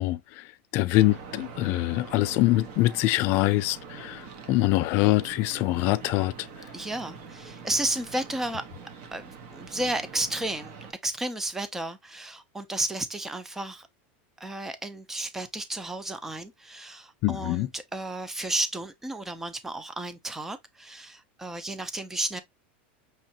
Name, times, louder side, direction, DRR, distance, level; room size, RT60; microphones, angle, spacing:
voice 1, 0.0-6.5 17.2-17.7, left 17 dB, 40° left, 0.4 m, -24 dB
sound 1, 0.9-10.9, right 5 dB, 50° right, 1.2 m, -44 dB
voice 2, 6.7-8.6 9.1-10.7 11.0-13.9 14.4-22.4, right 1 dB, 5° right, 0.5 m, -32 dB
5.6 x 3.0 x 2.8 m
supercardioid pair, 160°, 6 cm